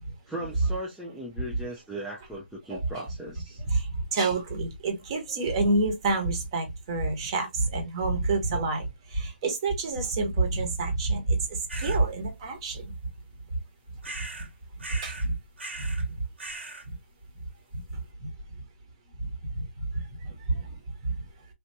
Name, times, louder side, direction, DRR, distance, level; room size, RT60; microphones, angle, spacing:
voice 1, 0.3-3.6, right 1 dB, ahead, 0.3 m, -37 dB
voice 2, 3.7-12.9 14.9-15.4 15.8-16.2 16.9-17.0 17.7-18.3 19.2-21.3, right 3 dB, 25° right, 1.0 m, -28 dB
sound 1, 11.7-12.0 14.0-14.5 14.8-15.3 15.6-16.0 16.4-16.8, right 2 dB, 90° right, 2.0 m, -39 dB
3.4 x 2.5 x 2.6 m
hypercardioid pair, 160°, 6 cm